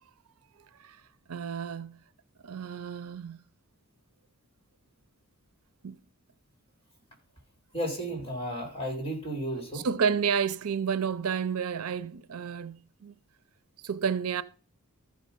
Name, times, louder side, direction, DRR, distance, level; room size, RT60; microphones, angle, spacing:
voice 1, 1.3-2.0 2.4-3.4 5.8-6.0 9.7-13.1 13.8-14.4, right 6 dB, 85° right, 0.6 m, -30 dB
voice 2, 7.7-9.9, equal, 25° left, 3.5 m, -33 dB
14.0 x 5.3 x 5.5 m
head